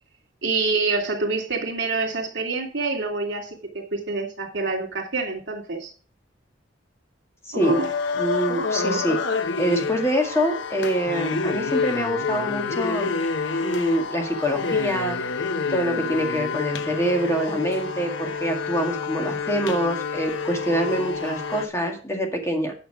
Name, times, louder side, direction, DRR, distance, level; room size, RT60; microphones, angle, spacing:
voice 1, 0.4-5.9 7.5-7.9, right 3 dB, 65° right, 0 dB, 2.8 m, -26 dB
sound 1, 7.6-21.7, left 4 dB, 75° left, 0.9 m, -28 dB
voice 2, 8.2-9.2 9.6-13.1 13.6-15.2 15.7-22.7, right 1 dB, 15° left, 2 dB, 2.0 m, -25 dB
9.5 x 6.7 x 4.9 m, 0.38 s
head